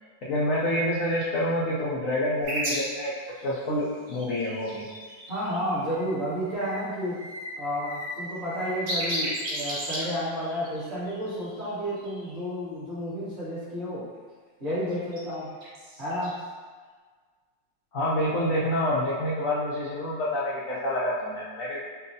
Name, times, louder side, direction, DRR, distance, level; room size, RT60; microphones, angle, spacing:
voice 1, 0.2-3.1 3.4-4.8 17.9-21.8, left 1 dB, 75° left, -7 dB, 0.7 m, -27 dB
sound 1, 2.4-6.1 6.5-6.8 7.1-12.3 14.9-15.2 15.6-16.3, equal, 75° right, 1.7 m, -35 dB
voice 2, 5.3-7.2 7.6-14.1 14.6-15.5 16.0-16.4, equal, 35° right, -11 dB, 1.4 m, -31 dB
5.7 x 2.3 x 2.6 m, 1.5 s
omnidirectional pair, 2.1 m